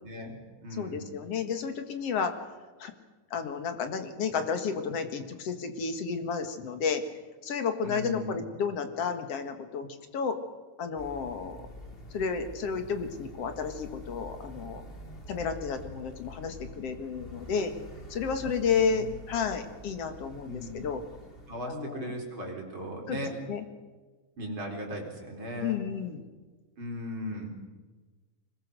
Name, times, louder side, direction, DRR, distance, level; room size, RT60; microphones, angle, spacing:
voice 1, 0.0-1.1 7.8-8.3 18.7-19.1 20.4-20.8 21.5-23.3 24.4-25.8 26.8-27.5, equal, 40° right, 0 dB, 4.7 m, -38 dB
voice 2, 0.8-2.3 2.8-2.9 3.3-7.0 7.4-9.9 10.1-10.4 10.8-11.6 12.1-14.8 15.3-17.7 18.1-21.0 21.7-22.2 23.1-23.7 25.6-26.2, left 6 dB, 55° left, 7 dB, 2.5 m, -32 dB
sound 1, 11.0-21.7, equal, 20° left, 1.9 m, -46 dB
25.0 x 21.0 x 6.6 m, 1.3 s
omnidirectional pair, 3.6 m